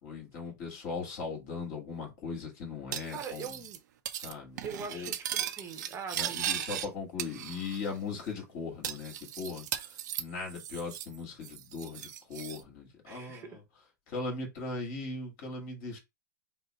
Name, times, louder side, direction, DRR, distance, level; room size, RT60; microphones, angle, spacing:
voice 1, 0.0-3.5 4.1-5.1 6.1-9.6 10.2-13.6 14.1-16.0, left 4 dB, 50° left, 2.1 m, -39 dB
Cutlery silverware, 2.9-3.8 4.1-4.3 4.6-6.9 7.2-7.9 8.2-8.3 8.8-11.2 11.4-12.6, right 11 dB, 70° right, 0.6 m, -37 dB
voice 2, 3.1-3.8 4.6-6.7 13.1-13.6, right 6 dB, 25° right, 0.9 m, -42 dB
3.8 x 2.1 x 4.3 m
hypercardioid pair, 130°, 10 cm